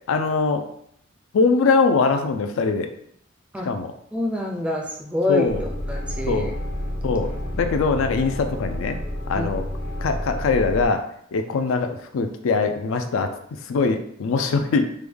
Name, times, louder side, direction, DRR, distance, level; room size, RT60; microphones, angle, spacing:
voice 1, 0.1-0.6 1.3-2.9 3.7-3.9 5.3-5.6 6.3-6.5 7.0-9.0 9.3-9.6 10.0-11.0 11.3-13.3 13.7-14.9, left 4 dB, 80° left, 7 dB, 0.4 m, -22 dB
voice 2, 4.1-6.5 9.3-9.5, left 2 dB, 5° right, 1 dB, 0.3 m, -26 dB
sound 1, 5.5-10.9, left 1 dB, 60° left, 0.8 m, -30 dB
3.2 x 2.2 x 3.4 m, 0.70 s
head